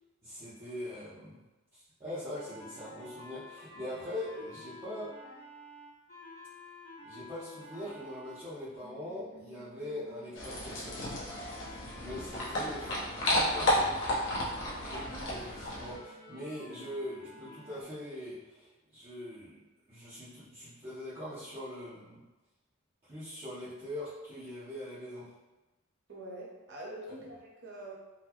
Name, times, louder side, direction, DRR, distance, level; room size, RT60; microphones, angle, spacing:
voice 1, 0.2-1.4 1.7-5.1 7.0-11.2 11.6-13.0 13.3-14.0 14.8-19.6 19.9-22.2 23.0-25.3, left 1 dB, 30° right, -13 dB, 0.8 m, -42 dB
sound 1, 2.3-8.4 8.8-17.8, left 1 dB, 35° left, 1.2 m, -51 dB
sound 2, 10.3-16.0, left 1 dB, 60° left, 0.8 m, -32 dB
voice 2, 26.1-27.9, right 1 dB, 60° right, -4 dB, 0.8 m, -44 dB
3.9 x 2.2 x 2.9 m, 1.1 s
head